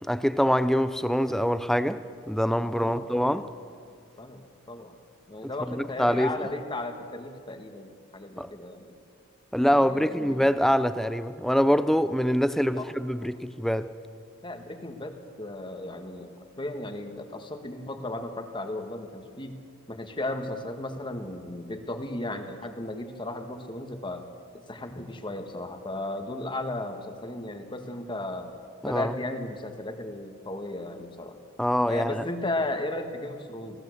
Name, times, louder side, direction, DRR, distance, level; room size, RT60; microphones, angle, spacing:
voice 1, 0.0-2.0 2.3-3.5 5.7-6.4 8.4-8.5 9.5-13.9 28.8-29.1 31.6-32.2, equal, ahead, 0.5 m, -24 dB
voice 2, 2.6-3.1 4.2-5.0 5.3-8.9 9.7-10.5 12.8-12.9 14.4-19.6 19.9-24.3 24.5-28.5 28.8-31.4 31.9-33.8, left 2 dB, 20° left, 1.5 m, -35 dB
23.5 x 17.0 x 7.9 m
head